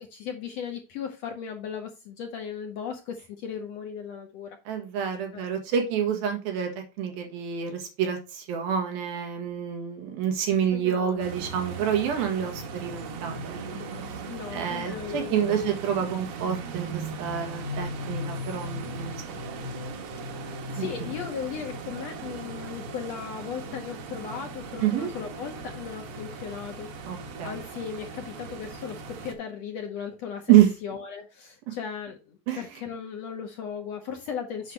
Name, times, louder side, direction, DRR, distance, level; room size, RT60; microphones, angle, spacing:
voice 1, 0.0-4.6 5.3-5.4 10.7-11.2 14.3-15.8 20.7-30.5 30.8-34.7, left 7 dB, 70° left, 1.6 m, -37 dB
voice 2, 4.7-6.7 7.0-13.6 14.5-19.1 19.4-19.7 20.8-21.1 24.8-25.1 27.1-27.6 30.5-30.7 32.5-32.6, right 9 dB, 90° right, 3.6 m, -27 dB
sound 1, 11.2-29.3, right 2 dB, 60° right, 1.9 m, -38 dB
8.0 x 6.3 x 3.2 m
omnidirectional pair, 4.1 m